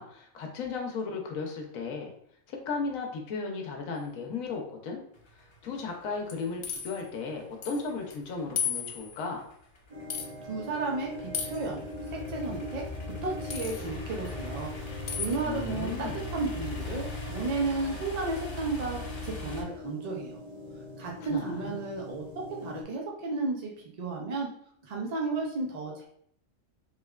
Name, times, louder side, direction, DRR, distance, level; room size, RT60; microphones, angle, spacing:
voice 1, 0.0-2.1 2.5-5.0 5.6-9.5 15.4-16.3 21.0-21.8, left 4 dB, 85° left, 2 dB, 1.1 m, -35 dB
sound 1, 5.1-19.6, left 2 dB, 30° left, 0.6 m, -40 dB
sound 2, 6.3-7.0 7.6-7.8 8.1-8.2 8.6-9.2 10.1-10.3 11.3-11.7 13.5-13.9 15.1-15.4, left 7 dB, 65° left, 0.8 m, -34 dB
sound 3, 9.9-22.8, left 2 dB, 35° right, 0.8 m, -43 dB
voice 2, 10.5-11.8 12.1-14.7 15.2-16.1 16.3-20.4 21.0-22.2 22.6-23.7 24.0-24.5 24.8-26.1, right 3 dB, 65° right, -1 dB, 0.4 m, -33 dB
3.3 x 3.1 x 2.3 m, 0.65 s
omnidirectional pair, 1.4 m